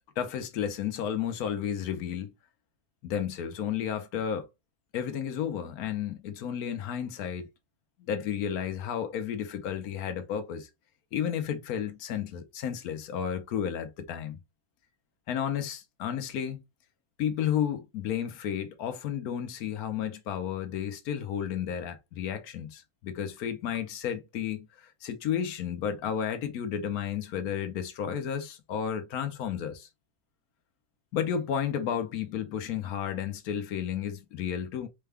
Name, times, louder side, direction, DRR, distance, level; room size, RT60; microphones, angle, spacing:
voice 1, 0.2-2.3 3.0-4.5 4.9-7.5 8.1-10.7 11.1-14.4 15.3-16.6 17.2-29.9 31.1-34.9, left 8 dB, 65° left, 1.1 m, -32 dB
4.7 x 2.2 x 3.3 m
omnidirectional pair, 1.8 m